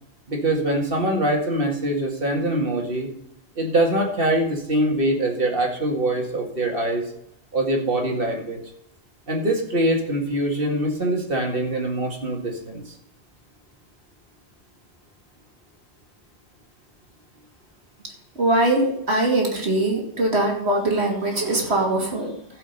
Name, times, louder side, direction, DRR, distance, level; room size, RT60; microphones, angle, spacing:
voice 1, 0.3-3.1 3.6-7.0 7.5-8.6 9.3-12.8, right 1 dB, 60° right, 2 dB, 2.3 m, -23 dB
voice 2, 18.3-22.3, right 2 dB, 75° right, 0 dB, 2.9 m, -22 dB
15.5 x 5.7 x 5.5 m, 0.73 s
omnidirectional pair, 1.1 m